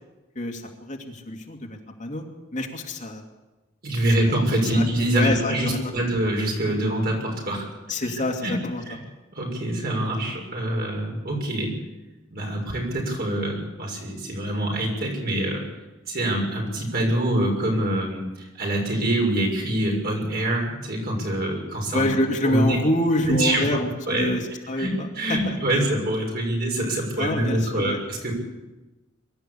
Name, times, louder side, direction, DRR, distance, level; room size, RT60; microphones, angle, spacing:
voice 1, 0.3-2.2 2.5-3.2 4.3-4.4 4.7-4.9 5.1-5.9 7.9-8.8 21.9-25.6 27.2-28.0, left 1 dB, 40° left, 1 dB, 2.5 m, -26 dB
voice 2, 3.8-7.7 8.0-8.6 8.9-9.0 9.3-11.7 12.3-15.6 16.1-18.2 18.6-22.1 22.4-22.8 23.2-24.3 24.7-24.9 25.1-28.3, right 1 dB, 50° right, 0 dB, 6.8 m, -25 dB
23.5 x 13.0 x 8.6 m, 1.1 s
head